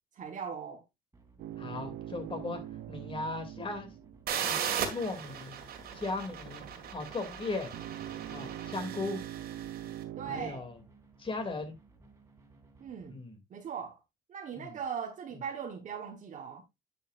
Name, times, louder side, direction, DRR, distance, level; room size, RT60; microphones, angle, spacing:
voice 1, 0.1-0.8 10.2-10.7 12.8-13.2 13.5-14.0 14.3-16.6, right 7 dB, 45° right, 1.2 m, -39 dB
sound 1, 1.1-13.1, right 2 dB, 15° right, 2.4 m, -59 dB
sound 2, 1.4-4.8 7.7-10.5, right 12 dB, 80° right, 0.7 m, -42 dB
voice 2, 1.6-2.6 2.9-3.9 4.4-4.6 4.9-5.5 5.9-6.6 6.9-7.7 8.3-9.2 10.3-10.8 11.2-11.7 13.1-13.4 14.5-14.8, left 3 dB, 30° left, 2.6 m, -37 dB
sound 3, 4.3-9.9, right 8 dB, 65° right, 2.0 m, -38 dB
10.5 x 6.5 x 2.5 m
cardioid pair, 110°, 17 cm